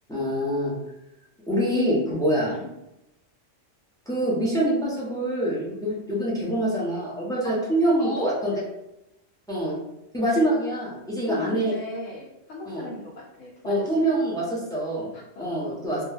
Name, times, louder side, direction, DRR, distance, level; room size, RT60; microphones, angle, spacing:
voice 1, 0.1-0.7 1.5-2.5 4.1-8.5 9.5-9.7 10.1-11.7 12.6-12.9 13.6-15.1 15.4-16.0, right 1 dB, 5° left, -6 dB, 0.4 m, -25 dB
voice 2, 8.0-8.4 11.3-14.1 15.1-15.6, left 2 dB, 85° left, -4 dB, 1.0 m, -35 dB
2.2 x 2.2 x 3.3 m, 0.88 s
omnidirectional pair, 1.3 m